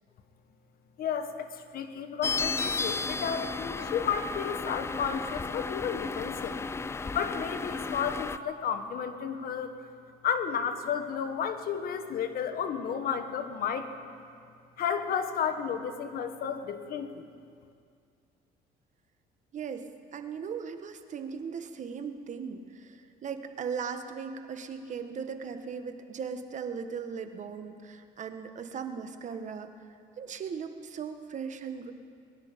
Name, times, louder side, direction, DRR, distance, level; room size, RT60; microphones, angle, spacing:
voice 1, 1.0-6.6 7.1-9.7 10.2-13.9 14.8-17.3, left 7 dB, 60° left, 8 dB, 1.3 m, -32 dB
sound 1, 2.2-8.4, left 4 dB, 15° left, 0.4 m, -33 dB
voice 2, 19.5-29.7 30.2-31.9, right 6 dB, 45° right, 8 dB, 1.2 m, -38 dB
21.5 x 11.0 x 5.1 m, 2.3 s
cardioid pair, 110°, 17 cm